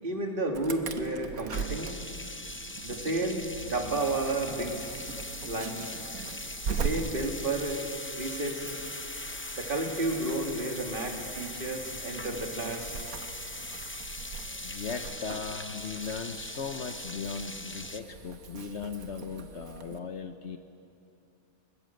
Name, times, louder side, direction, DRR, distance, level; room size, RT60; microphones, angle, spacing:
voice 1, 0.0-2.0 2.8-4.9 5.5-5.9 6.7-7.8 8.1-8.7 9.6-13.0, right 2 dB, 40° right, 2 dB, 2.5 m, -32 dB
Insect / Alarm, 0.5-20.0, right 6 dB, 85° right, 1.5 m, -41 dB
sound 1, 1.5-18.0, left 2 dB, 20° left, 0.4 m, -40 dB
voice 2, 14.6-20.6, left 5 dB, 55° left, 7 dB, 1.2 m, -38 dB
21.0 x 20.0 x 7.9 m, 2.5 s
omnidirectional pair, 1.4 m